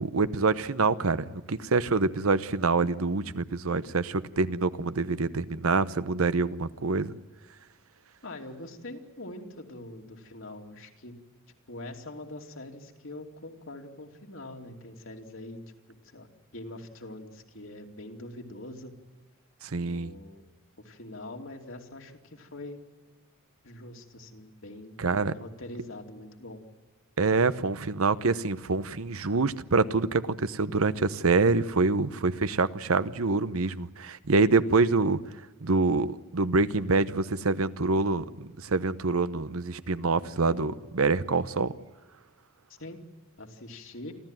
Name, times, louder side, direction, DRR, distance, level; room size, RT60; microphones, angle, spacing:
voice 1, 0.0-7.1 19.6-20.1 25.0-25.3 27.2-35.2 35.6-41.7, right 3 dB, 80° right, 0.9 m, -26 dB
voice 2, 8.2-11.2 11.7-15.6 16.1-16.3 16.5-18.9 19.8-20.5 20.8-22.8 23.6-26.6 42.8-43.0 43.4-44.1, left 1 dB, 65° left, 2.9 m, -43 dB
28.5 x 13.5 x 9.1 m
head